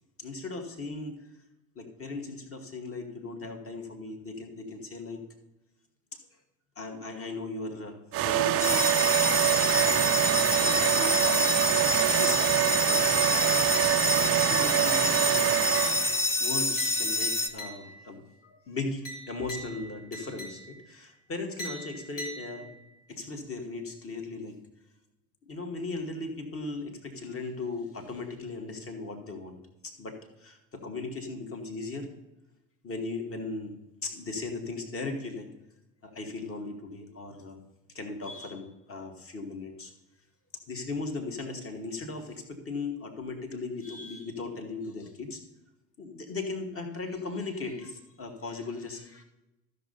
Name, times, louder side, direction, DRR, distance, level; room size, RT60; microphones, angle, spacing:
voice 1, 0.2-1.3 1.8-5.2 6.8-8.9 9.7-9.9 10.6-13.1 14.4-15.6 16.4-22.7 23.1-24.6 25.4-32.1 32.8-33.8 34.0-35.5 36.0-37.6 37.9-39.9 40.7-45.4 46.0-49.2, left 3 dB, 30° left, 3 dB, 2.2 m, -37 dB
sound 1, 8.1-16.2, right 14 dB, 30° right, 0.5 m, -25 dB
sound 2, 8.6-17.5, left 2 dB, 5° left, 0.7 m, -27 dB
sound 3, 13.7-14.3 14.7-15.1 15.7-18.2 19.0-21.0 21.6-23.0, right 1 dB, 75° left, 3.4 m, -43 dB
13.5 x 6.8 x 4.2 m, 0.98 s
hypercardioid pair, 75°, 45 cm